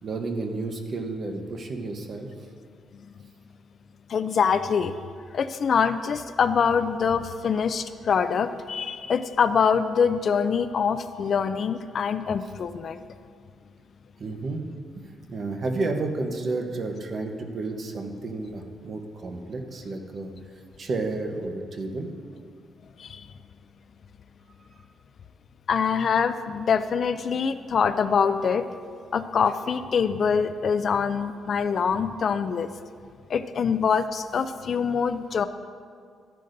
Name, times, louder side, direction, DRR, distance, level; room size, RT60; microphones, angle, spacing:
voice 1, 0.0-2.3 14.2-14.6 15.0-20.3 20.8-22.1, right 3 dB, 40° right, 4 dB, 0.9 m, -31 dB
voice 2, 4.1-4.9 5.3-13.0 23.0-23.3 25.7-28.6 29.1-32.7 33.3-35.5, left 6 dB, 45° left, 11 dB, 0.3 m, -24 dB
13.5 x 10.5 x 2.6 m, 2.2 s
cardioid pair, 155°, 0 cm